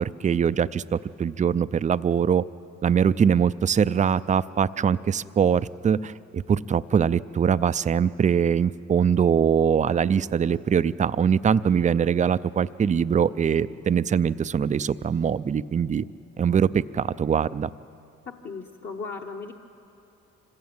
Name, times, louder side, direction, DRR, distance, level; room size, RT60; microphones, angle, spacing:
voice 1, 0.0-2.4 2.8-16.0 16.4-17.7, right 7 dB, 25° right, 16 dB, 0.4 m, -22 dB
voice 2, 18.4-19.5, left 4 dB, 40° left, 0 dB, 1.2 m, -36 dB
25.5 x 15.5 x 8.8 m, 2.8 s
cardioid pair, 90°, 30 cm